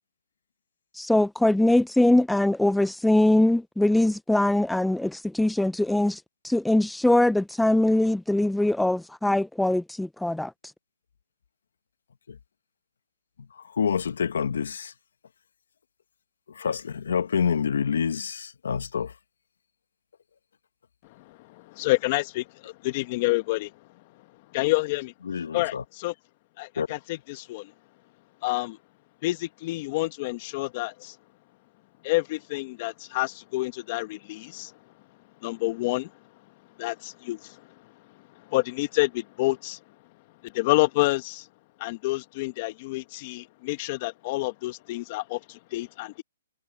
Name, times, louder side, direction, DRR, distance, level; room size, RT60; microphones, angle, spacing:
voice 1, 0.9-10.5, left 1 dB, ahead, 0.6 m, -22 dB
voice 2, 13.7-14.9 16.5-19.1 25.2-25.8 26.8-27.0, left 7 dB, 75° left, 1.3 m, -27 dB
voice 3, 21.3-23.7 24.5-25.1 25.5-26.1 26.6-27.7 28.4-28.8 29.2-31.1 32.0-34.7 35.4-36.1 36.8-37.6 38.5-39.8 40.5-41.5 41.8-46.2, left 21 dB, 35° left, 1.6 m, -28 dB
hypercardioid pair, 155°, 0 cm